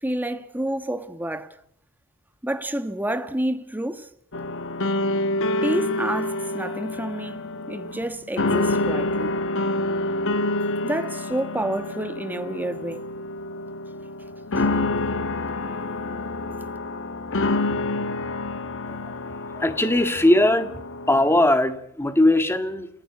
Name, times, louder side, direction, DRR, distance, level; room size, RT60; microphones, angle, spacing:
voice 1, 0.0-1.6 2.4-4.1 5.6-9.4 10.8-13.0 15.2-16.0, right 1 dB, 10° right, 1.3 m, -29 dB
sound 1, 4.3-21.4, left 2 dB, 60° left, 1.2 m, -27 dB
voice 2, 19.5-20.8 21.1-22.9, left 1 dB, 10° left, 1.7 m, -20 dB
29.5 x 15.5 x 8.4 m
head